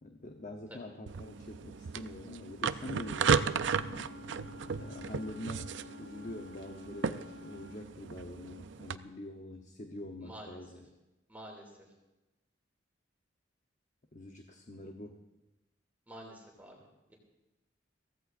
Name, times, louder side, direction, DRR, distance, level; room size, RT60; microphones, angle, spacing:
voice 1, 0.0-4.1 4.7-5.7 6.0-10.9 14.1-15.2, left 1 dB, 40° left, 3 dB, 0.9 m, -45 dB
sound 1, 1.1-9.0, right 6 dB, 70° right, 0.5 m, -35 dB
Wind instrument woodwind instrument, 2.7-7.8, left 2 dB, 75° left, 0.7 m, -50 dB
voice 2, 10.2-10.6 11.3-11.7 16.1-17.1, right 1 dB, 10° right, -1 dB, 2.6 m, -49 dB
22.5 x 16.0 x 2.6 m, 1.0 s
head